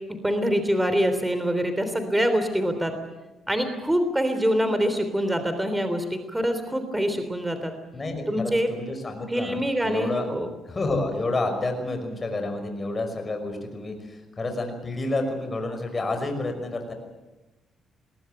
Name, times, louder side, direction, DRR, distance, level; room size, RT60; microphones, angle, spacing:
voice 1, 0.2-2.9 3.5-7.7 8.3-8.7 9.3-10.5, equal, 10° right, 8 dB, 3.4 m, -25 dB
voice 2, 7.9-10.3 10.6-16.9, left 2 dB, 30° left, 5 dB, 5.8 m, -29 dB
21.5 x 18.5 x 9.1 m, 1.1 s
cardioid pair, 90°, 0 cm